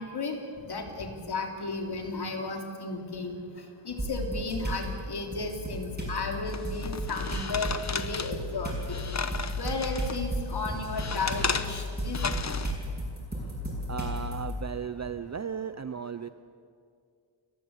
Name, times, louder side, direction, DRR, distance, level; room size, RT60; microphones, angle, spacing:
voice 1, 0.0-3.4 3.8-8.7 9.6-12.2, left 3 dB, 50° left, 3 dB, 3.3 m, -34 dB
sound 1, 4.0-4.8 5.3-14.5, equal, 20° right, 7.7 m, -34 dB
sound 2, 6.5-10.2 10.6-12.7, left 5 dB, 35° left, 1.0 m, -34 dB
voice 2, 13.9-16.3, right 7 dB, 35° right, 13 dB, 0.5 m, -35 dB
29.0 x 15.0 x 8.3 m, 2.3 s
wide cardioid pair, 140°, 49 cm